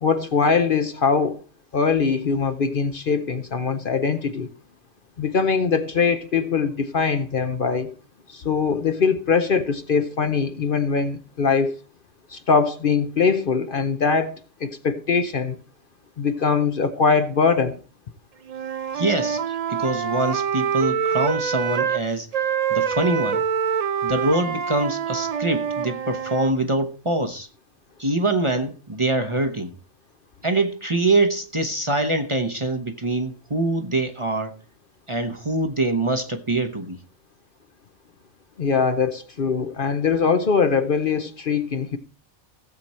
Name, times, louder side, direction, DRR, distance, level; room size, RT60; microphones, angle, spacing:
voice 1, 0.0-1.4 1.7-4.5 5.2-7.9 8.3-11.8 12.3-15.6 16.2-17.8 38.6-42.0, left 5 dB, 50° left, 0.8 m, -22 dB
Wind instrument woodwind instrument, 18.5-22.0 22.3-26.5, right 7 dB, 45° right, 0.5 m, -25 dB
voice 2, 18.9-22.3 22.7-23.4 24.0-27.5 28.0-29.7 30.4-34.6 35.1-37.0, right 2 dB, 25° right, 0.9 m, -24 dB
16.0 x 7.6 x 4.3 m
omnidirectional pair, 1.3 m